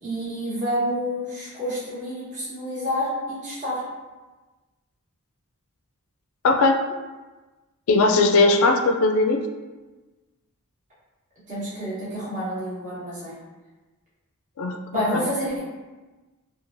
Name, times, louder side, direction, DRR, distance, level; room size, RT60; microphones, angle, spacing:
voice 1, 0.0-3.8 11.5-13.3 14.9-15.6, equal, 35° right, -11 dB, 1.1 m, -28 dB
voice 2, 6.4-6.8 7.9-9.4 14.6-14.8 15.1-15.2, left 3 dB, 65° left, 4 dB, 0.3 m, -18 dB
2.9 x 2.4 x 2.5 m, 1.2 s
head